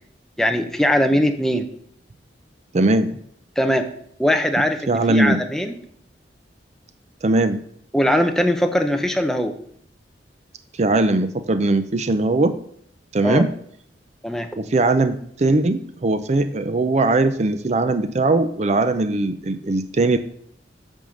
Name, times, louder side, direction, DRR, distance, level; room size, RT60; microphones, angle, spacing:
voice 1, 0.4-1.7 3.6-3.8 4.2-5.8 7.9-9.6 13.2-13.4 14.2-14.5, equal, 5° left, 5 dB, 0.7 m, -20 dB
voice 2, 2.7-3.1 4.9-5.4 7.2-7.6 10.8-12.5 13.1-13.5 14.6-20.2, right 2 dB, 40° right, 9 dB, 0.5 m, -20 dB
10.5 x 3.6 x 6.4 m, 0.66 s
head